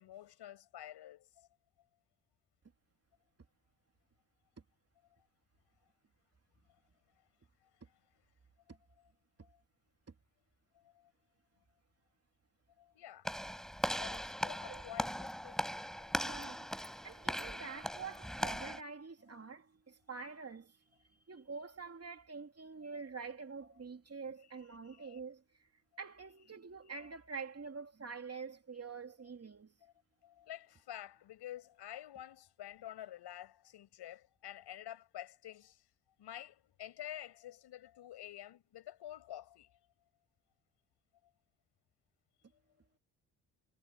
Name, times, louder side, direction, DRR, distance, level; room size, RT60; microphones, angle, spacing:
voice 1, 0.0-1.5 8.7-8.8 9.4-9.6 10.8-11.1 12.8-13.3 14.0-15.7 16.0-16.3 24.8-25.2 29.8-29.9 30.2-35.8 36.2-39.8, left 12 dB, 80° left, 5.8 m, -49 dB
Walk footsteps / Slam, 13.2-18.8, equal, ahead, 4.0 m, -39 dB
voice 2, 16.1-20.8 21.1-25.7 26.0-29.7, right 5 dB, 35° right, 2.8 m, -47 dB
supercardioid pair, 60°, 40 cm